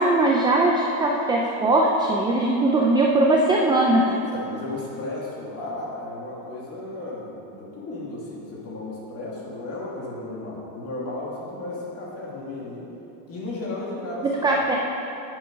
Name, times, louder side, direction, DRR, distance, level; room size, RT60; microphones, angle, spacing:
voice 1, 0.0-4.1 14.2-14.7, right 2 dB, 10° right, -1 dB, 0.4 m, -20 dB
voice 2, 4.1-12.9 13.3-14.6, left 2 dB, 35° left, -5 dB, 2.5 m, -34 dB
10.0 x 7.2 x 5.1 m, 2.9 s
cardioid pair, 150°, 42 cm